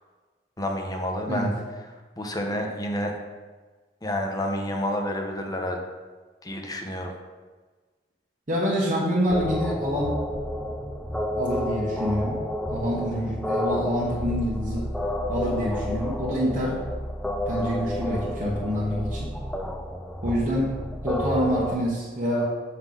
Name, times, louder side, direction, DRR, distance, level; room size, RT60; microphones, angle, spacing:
voice 1, 0.6-1.5 2.2-3.1 4.0-5.8 6.4-7.1, left 1 dB, 20° left, 2 dB, 0.9 m, -29 dB
voice 2, 8.5-10.2 11.4-12.4 12.7-14.9 15.3-16.8 17.5-19.3 20.2-20.7 21.0-22.4, equal, 45° right, -6 dB, 1.2 m, -26 dB
sound 1, 9.3-21.7, left 1 dB, 5° left, 0.5 m, -30 dB
7.7 x 5.6 x 3.9 m, 1.4 s
head